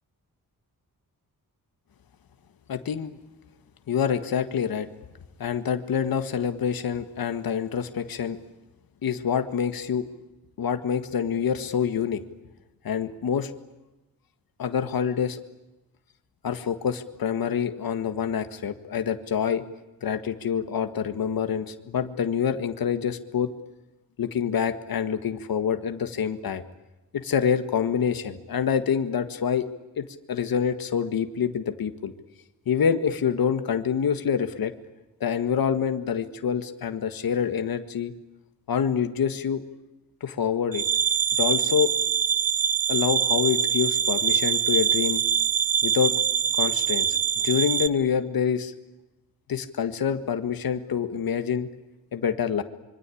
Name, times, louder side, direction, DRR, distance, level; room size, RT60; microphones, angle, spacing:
voice 1, 2.7-3.2 3.9-4.9 5.4-8.4 9.0-10.1 10.6-12.2 12.8-13.5 14.6-15.4 16.4-19.6 20.0-23.5 24.2-26.6 27.1-29.7 30.0-32.1 32.7-34.7 35.2-38.1 38.7-39.6 40.2-40.9 41.4-41.9 42.9-45.2 45.8-46.1 46.6-47.2 47.4-48.7 49.5-51.7 52.1-52.6, left 7 dB, 75° left, 8 dB, 1.8 m, -26 dB
sound 1, 40.7-47.9, right 8 dB, 65° right, 1.0 m, -24 dB
26.0 x 24.5 x 8.6 m, 1.0 s
wide cardioid pair, 180°, 36 cm